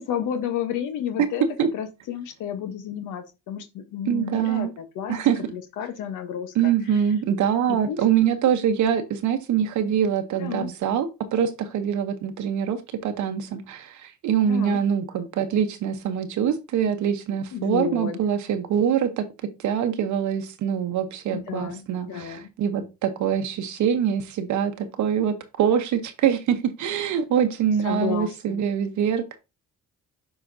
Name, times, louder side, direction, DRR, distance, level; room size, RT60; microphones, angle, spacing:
voice 1, 0.0-1.4 1.7-5.2 5.5-6.7 7.7-8.0 10.4-10.7 14.5-14.8 17.5-18.2 21.3-22.5 27.8-28.7, left 8 dB, 85° left, 0.9 m, -31 dB
voice 2, 1.2-1.7 4.1-4.7 5.1-5.5 6.5-19.2 19.6-29.4, right 8 dB, 75° right, 0.8 m, -24 dB
8.0 x 4.8 x 2.6 m
cardioid pair, 90°, 30 cm